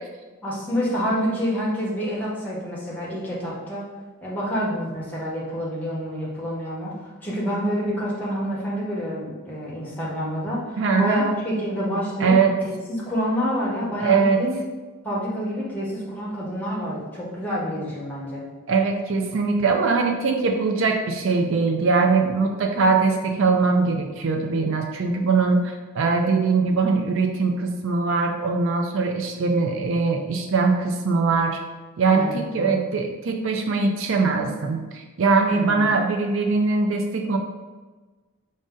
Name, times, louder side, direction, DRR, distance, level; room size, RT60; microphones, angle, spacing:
voice 1, 0.4-3.9 4.2-14.6 15.0-18.4 32.1-32.8 35.5-35.9, equal, 10° left, -7 dB, 1.0 m, -28 dB
voice 2, 10.8-11.2 12.2-12.5 14.0-14.4 18.7-31.6 32.0-37.4, right 4 dB, 60° right, 3 dB, 0.4 m, -21 dB
5.1 x 2.6 x 3.7 m, 1.3 s
head